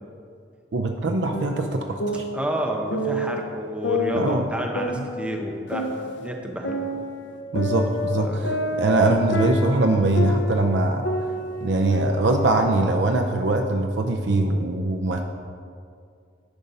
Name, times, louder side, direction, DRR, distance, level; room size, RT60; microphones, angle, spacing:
voice 1, 0.7-2.2 4.1-4.5 7.5-8.3 8.8-11.1 11.6-15.2, right 2 dB, 70° right, 3 dB, 0.5 m, -22 dB
sound 1, 1.3-3.4 3.8-6.3 6.6-10.7 11.0-13.0, left 1 dB, 70° left, 0.6 m, -29 dB
voice 2, 2.3-6.8 8.1-8.4, equal, 5° right, 1 dB, 0.7 m, -30 dB
10.5 x 5.2 x 4.1 m, 2.3 s
head